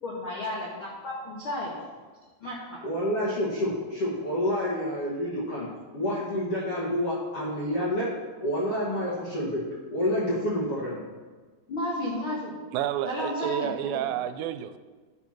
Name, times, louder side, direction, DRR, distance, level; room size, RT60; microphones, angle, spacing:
voice 1, 0.0-1.8 2.4-2.8 11.7-12.5 13.0-14.1, left 1 dB, 75° left, -6 dB, 1.2 m, -33 dB
voice 2, 2.8-5.7 5.9-8.1 8.4-9.6 9.9-11.0, equal, 60° left, -7 dB, 1.6 m, -28 dB
voice 3, 12.7-14.8, right 11 dB, 85° right, 10 dB, 2.7 m, -30 dB
11.5 x 4.5 x 5.8 m, 1.4 s
omnidirectional pair, 5.0 m